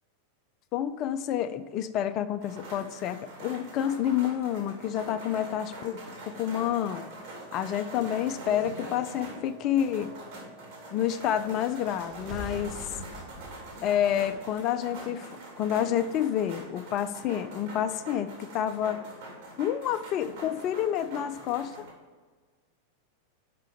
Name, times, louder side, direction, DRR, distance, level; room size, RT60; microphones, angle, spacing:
voice 1, 0.7-7.1 7.5-10.1 10.9-12.9 13.8-19.0 19.6-21.9, left 10 dB, 35° left, 11 dB, 0.4 m, -29 dB
sound 1, 2.4-21.9, right 2 dB, 50° right, 2.5 m, -44 dB
Wind instrument woodwind instrument, 6.0-12.7, right 1 dB, 80° right, 2.2 m, -51 dB
sound 2, 12.0-14.7, equal, 5° right, 1.1 m, -44 dB
5.8 x 5.6 x 6.7 m, 1.4 s
figure-of-eight pair, 90°, 0 cm